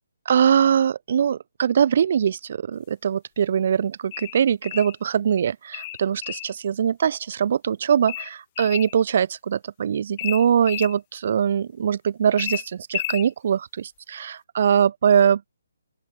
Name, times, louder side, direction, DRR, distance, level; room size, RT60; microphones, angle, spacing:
voice 1, 0.3-15.4, right 8 dB, 50° right, 0.3 m, -22 dB
sound 1, 4.1-5.0 5.7-6.5 8.1-8.9 10.2-10.9 12.4-13.3, left 17 dB, 30° left, 0.4 m, -32 dB
open air
hypercardioid pair, 160°, 0 cm